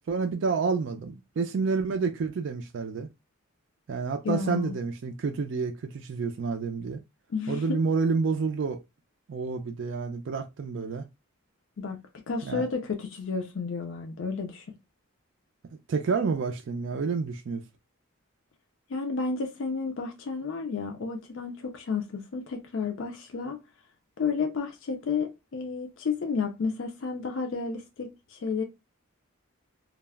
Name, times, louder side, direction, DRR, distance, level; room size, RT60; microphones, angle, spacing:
voice 1, 0.1-3.1 3.9-7.0 7.5-8.8 9.3-11.1 12.4-12.6 15.9-17.6, right 4 dB, 55° right, 0.3 m, -29 dB
voice 2, 4.2-4.8 7.3-7.8 11.8-12.0 12.3-14.7 18.9-23.6 24.2-28.6, left 5 dB, 60° left, 0.4 m, -31 dB
2.3 x 2.0 x 3.3 m
head